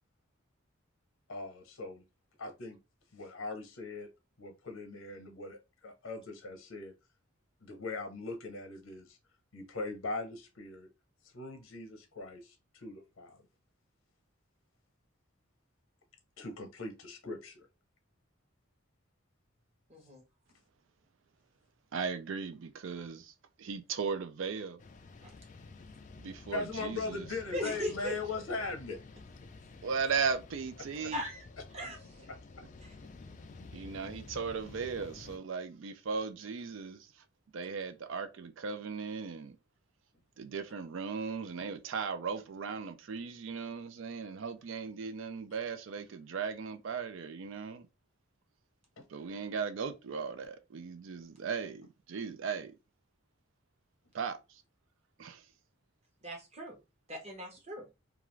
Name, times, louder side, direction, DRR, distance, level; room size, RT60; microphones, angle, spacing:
voice 1, 1.3-2.0 2.4-2.8 3.1-4.1 4.4-6.9 7.6-9.2 9.5-10.9 11.3-13.4 16.4-17.7 26.5-29.0 31.0-31.1 32.3-32.4 49.0-49.1, left 3 dB, 85° left, 0.8 m, -40 dB
voice 2, 19.9-20.2 25.2-25.3 27.5-28.1 31.1-31.5 31.7-32.0 32.8-32.9 56.2-56.8 57.1-57.9, equal, 30° right, 0.8 m, -39 dB
voice 3, 21.9-23.3 23.6-24.8 26.2-27.3 29.8-31.2 33.6-37.1 37.5-39.6 40.4-47.9 49.1-52.7 54.1-54.6 55.2-55.5, right 5 dB, 65° right, 0.4 m, -37 dB
sound 1, 24.8-35.4, left 3 dB, 35° left, 0.3 m, -51 dB
2.4 x 2.4 x 3.0 m
head